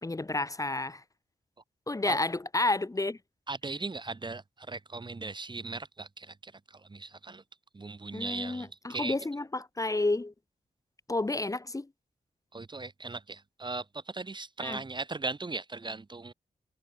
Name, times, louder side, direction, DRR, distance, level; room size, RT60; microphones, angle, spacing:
voice 1, 0.0-1.0 1.9-3.2 8.1-10.3 11.1-11.9 14.6-14.8, left 2 dB, 20° left, 1.1 m, -30 dB
voice 2, 3.5-7.4 7.7-9.2 12.5-16.3, right 3 dB, 30° right, 1.1 m, -38 dB
cardioid pair, 65°, 15 cm